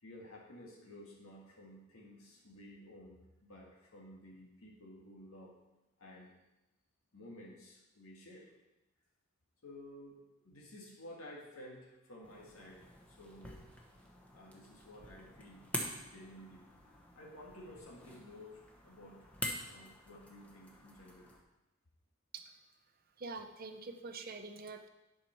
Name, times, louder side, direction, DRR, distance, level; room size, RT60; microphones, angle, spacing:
voice 1, 0.0-5.5 6.0-6.3 7.1-8.5 9.6-13.7 14.3-15.6 16.0-16.7 17.2-19.3 19.6-21.4, left 1 dB, 85° left, -2 dB, 1.8 m, -53 dB
sound 1, 12.2-21.4, equal, 5° left, 1.0 m, -46 dB
voice 2, 23.2-24.9, right 3 dB, 45° right, 7 dB, 0.7 m, -45 dB
10.5 x 5.7 x 4.5 m, 0.97 s
head